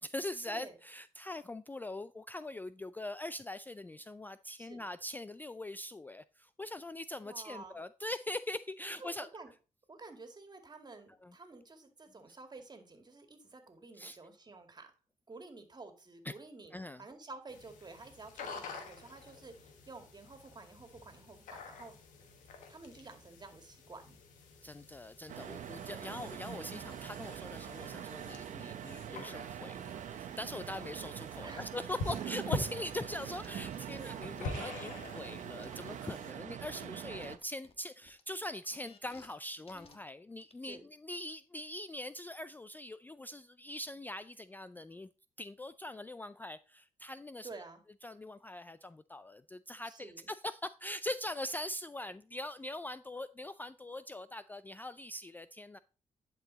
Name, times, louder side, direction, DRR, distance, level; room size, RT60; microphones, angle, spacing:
voice 1, 0.0-9.3 11.2-11.3 13.9-14.2 16.3-16.4 16.7-17.0 24.6-45.1 45.4-47.5 48.0-55.8, left 1 dB, 15° left, 0.3 m, -42 dB
voice 2, 7.2-7.8 9.0-9.5 9.9-14.9 15.3-16.7 17.0-21.9 22.7-24.2 26.1-26.2 31.4-31.8 34.0-34.1 40.6-40.8 47.4-47.8 49.9-50.3, right 3 dB, 35° right, 2.1 m, -51 dB
sound 1, 17.5-36.3, left 2 dB, 85° left, 1.5 m, -47 dB
sound 2, 25.3-37.4, right 9 dB, 70° right, 0.7 m, -44 dB
sound 3, 33.2-33.8 34.4-36.8 37.2-39.3 39.7-40.0 40.4-40.5, left 5 dB, 45° left, 1.4 m, -59 dB
10.5 x 4.6 x 4.0 m
supercardioid pair, 65°, 13 cm